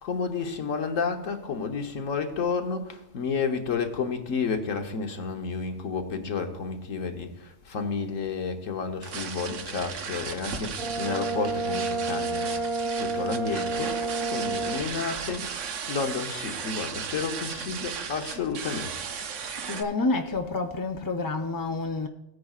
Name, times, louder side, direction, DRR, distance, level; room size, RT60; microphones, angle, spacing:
voice 1, 0.0-12.6 13.0-14.0 14.3-15.5 15.9-18.9, left 5 dB, 85° left, 1.5 m, -31 dB
sound 1, 9.0-19.8, right 6 dB, 75° right, 1.1 m, -36 dB
Fireworks, 10.5-14.9 15.1-15.9, right 1 dB, 90° right, 1.8 m, -47 dB
Brass instrument, 10.8-14.9, right 3 dB, 50° right, 0.4 m, -30 dB
voice 2, 19.7-22.1, left 3 dB, 35° left, 0.3 m, -28 dB
17.0 x 9.3 x 2.4 m
omnidirectional pair, 1.3 m